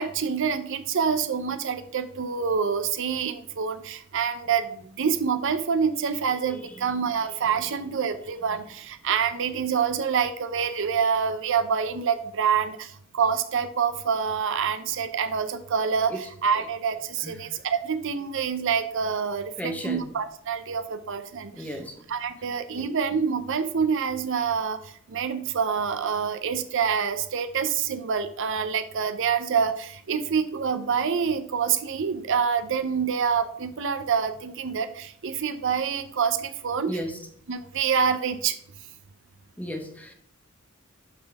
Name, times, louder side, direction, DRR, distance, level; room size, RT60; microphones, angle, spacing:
voice 1, 0.0-21.7 22.1-37.0 37.5-38.6, right 6 dB, 65° right, 10 dB, 0.6 m, -26 dB
voice 2, 6.5-6.9 7.3-7.4 16.1-16.2 16.5-16.7 17.2-17.4 19.6-20.1 21.5-22.0 22.7-22.9 36.9-37.2 39.6-40.1, equal, 5° left, 4 dB, 1.0 m, -35 dB
11.0 x 4.0 x 3.5 m, 0.63 s
head